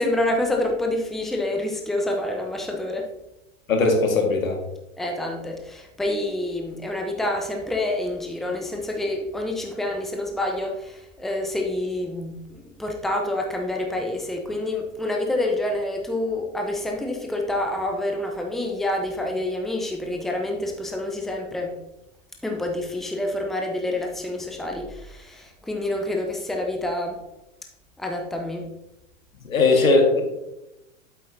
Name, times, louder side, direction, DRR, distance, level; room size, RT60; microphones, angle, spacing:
voice 1, 0.0-3.1 5.0-12.4 12.8-21.7 22.4-27.2 28.0-28.6, left 1 dB, ahead, 2 dB, 0.8 m, -27 dB
voice 2, 3.7-4.6 29.5-30.2, left 3 dB, 90° left, 3 dB, 1.9 m, -19 dB
8.2 x 8.0 x 2.8 m, 0.92 s
hypercardioid pair, 110°, 40 cm